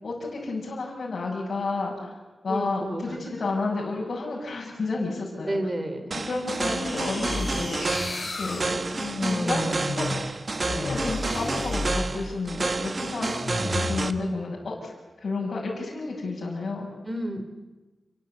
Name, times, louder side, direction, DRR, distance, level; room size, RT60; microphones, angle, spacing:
voice 1, 0.0-5.6 6.2-8.1 8.4-8.8 9.2-9.6 9.9-10.1 10.8-13.3 13.6-16.9, left 3 dB, 50° left, -4 dB, 6.3 m, -31 dB
voice 2, 2.5-3.2 5.5-6.1 17.1-17.4, right 1 dB, 25° right, 7 dB, 3.2 m, -30 dB
sound 1, 6.1-14.1, right 3 dB, 40° right, 1.3 m, -30 dB
sound 2, 6.6-12.5 13.4-14.1, left 2 dB, 35° left, 3.5 m, -32 dB
28.5 x 23.5 x 8.1 m, 1.2 s
wide cardioid pair, 145°, 0 cm